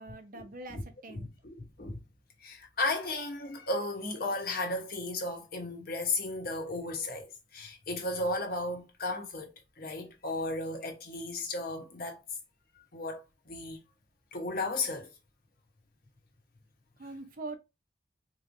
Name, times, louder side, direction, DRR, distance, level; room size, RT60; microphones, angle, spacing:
voice 1, 0.0-1.3 17.0-17.6, right 2 dB, 50° right, 0.7 m, -43 dB
voice 2, 1.1-2.0 2.4-12.2 12.9-13.8 14.3-15.1, left 2 dB, 55° left, 1.1 m, -35 dB
4.1 x 3.1 x 2.6 m
head